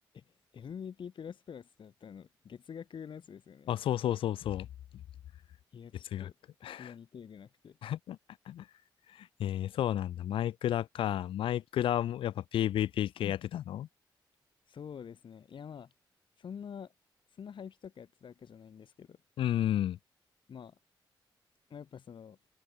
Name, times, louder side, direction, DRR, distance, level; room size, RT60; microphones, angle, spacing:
voice 1, 0.1-3.7 5.7-6.3 6.8-7.8 14.7-15.9 16.4-16.9 17.3-19.2 20.5-20.8 21.7-22.4, left 7 dB, 65° left, 2.7 m, -46 dB
voice 2, 3.7-4.7 6.1-6.3 6.6-6.9 7.8-8.2 8.5-8.7 9.1-13.9 19.4-20.0, left 11 dB, 85° left, 0.7 m, -32 dB
cardioid pair, 60°, 9 cm